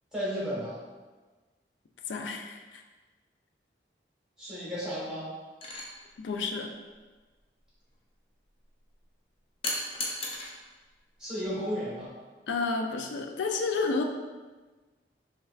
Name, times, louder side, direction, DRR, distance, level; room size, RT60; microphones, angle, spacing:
voice 1, 0.1-0.8 4.4-5.3 11.2-12.1, equal, 5° right, -9 dB, 1.2 m, -33 dB
voice 2, 2.1-2.8 6.2-6.7 12.5-14.0, left 4 dB, 90° left, 4 dB, 0.4 m, -30 dB
sound 1, 5.6-5.9 9.6-10.5 11.9-12.1, left 2 dB, 30° left, 0.5 m, -34 dB
5.5 x 2.3 x 2.3 m, 1.3 s
head